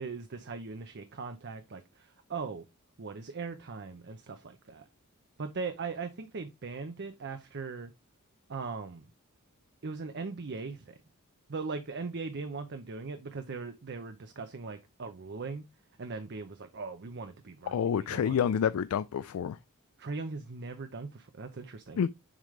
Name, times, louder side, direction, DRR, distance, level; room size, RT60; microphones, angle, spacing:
voice 1, 0.0-2.6 3.0-4.8 5.4-7.9 8.5-9.1 9.8-10.9 11.5-15.6 16.0-17.7 18.1-18.4 20.0-22.0, right 4 dB, 50° right, 0.6 m, -39 dB
voice 2, 17.7-19.6 22.0-22.1, left 7 dB, 70° left, 0.3 m, -28 dB
7.4 x 5.0 x 3.2 m
head